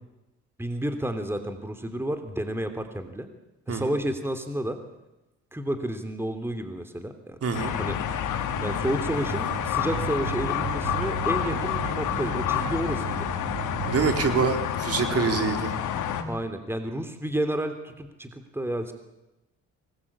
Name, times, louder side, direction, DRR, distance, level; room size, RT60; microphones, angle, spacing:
voice 1, 0.6-3.3 3.7-4.8 5.5-7.4 7.7-8.0 8.6-13.3 16.3-18.9, right 1 dB, 10° right, 8 dB, 3.0 m, -31 dB
voice 2, 7.4-7.8 13.9-15.7, right 5 dB, 50° right, 6 dB, 4.0 m, -25 dB
sound 1, 7.5-16.2, left 9 dB, 80° left, 3.0 m, -29 dB
sound 2, 8.5-14.4, right 9 dB, 70° right, 6.6 m, -36 dB
25.0 x 20.5 x 8.7 m, 0.96 s
cardioid pair, 90°, 30 cm